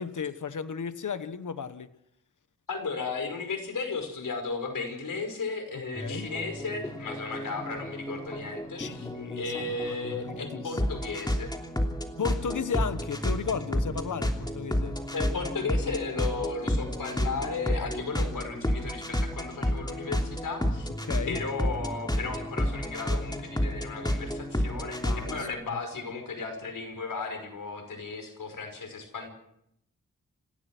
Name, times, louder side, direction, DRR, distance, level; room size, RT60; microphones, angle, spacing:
voice 1, 0.0-1.9 6.0-6.3 8.8-10.8 12.2-15.0 21.0-21.4 25.0-25.5 25.7-25.8, left 6 dB, 70° left, 1.3 m, -35 dB
voice 2, 2.7-9.1 9.4-11.5 15.1-20.9 21.3-29.3, left 4 dB, 85° left, 5.4 m, -35 dB
sound 1, 5.9-25.5, equal, 15° left, 3.0 m, -31 dB
28.0 x 16.0 x 6.1 m
wide cardioid pair, 70°, 32 cm